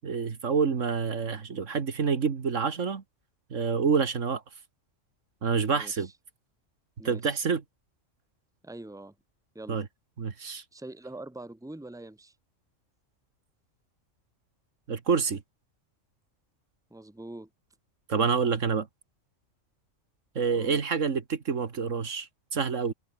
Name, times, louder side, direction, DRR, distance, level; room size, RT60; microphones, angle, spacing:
voice 1, 0.0-3.0 3.5-4.4 5.4-6.1 7.0-7.6 9.7-9.9 10.2-10.6 14.9-15.4 18.1-18.9 20.4-22.9, right 5 dB, 70° right, 2.0 m, -27 dB
voice 2, 5.7-6.1 7.0-7.4 8.6-9.1 9.5-9.8 10.4-12.3 16.9-17.5 20.5-20.8, right 2 dB, 5° right, 1.6 m, -44 dB
omnidirectional pair, 1.3 m